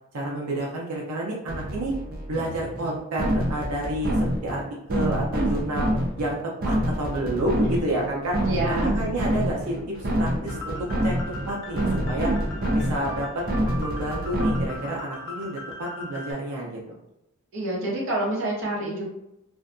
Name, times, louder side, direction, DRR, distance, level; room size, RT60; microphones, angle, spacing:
voice 1, 0.1-1.9 2.3-4.6 4.9-6.4 6.6-8.4 8.7-10.8 11.0-11.1 11.5-12.4 12.7-13.4 13.7-17.0, right 1 dB, 90° right, -2 dB, 0.6 m, -30 dB
sound 1, 1.5-15.0, right 1 dB, 40° right, 0.4 m, -27 dB
voice 2, 8.4-8.9 17.5-19.0, right 1 dB, 55° right, -4 dB, 0.8 m, -27 dB
sound 2, 10.5-16.3, equal, 55° left, 0.3 m, -39 dB
2.5 x 2.2 x 2.4 m, 0.87 s
head